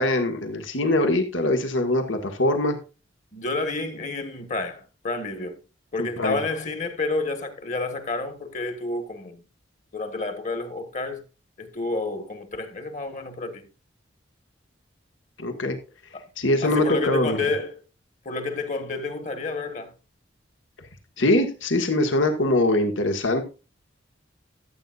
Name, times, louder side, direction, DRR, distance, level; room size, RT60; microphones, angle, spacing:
voice 1, 0.0-2.8 6.0-6.4 15.4-15.8 16.4-17.4 21.2-23.4, left 1 dB, 85° left, 1.7 m, -22 dB
voice 2, 3.3-5.6 5.9-9.4 9.9-11.2 11.6-13.7 16.6-17.7 18.2-19.9, left 3 dB, 40° left, 1.5 m, -29 dB
14.0 x 8.4 x 2.5 m
head